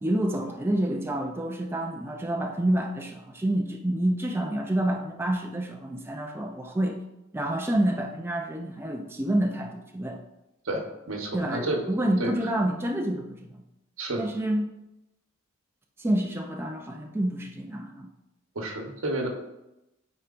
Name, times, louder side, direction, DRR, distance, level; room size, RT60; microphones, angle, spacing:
voice 1, 0.0-7.0 7.3-10.2 11.3-13.6 14.2-14.7 16.0-18.1, right 1 dB, 10° right, 2 dB, 0.4 m, -28 dB
voice 2, 10.6-11.8 12.2-12.3 14.0-14.3 18.5-19.3, right 1 dB, 85° right, 2 dB, 1.1 m, -30 dB
8.6 x 4.4 x 2.5 m, 0.93 s
head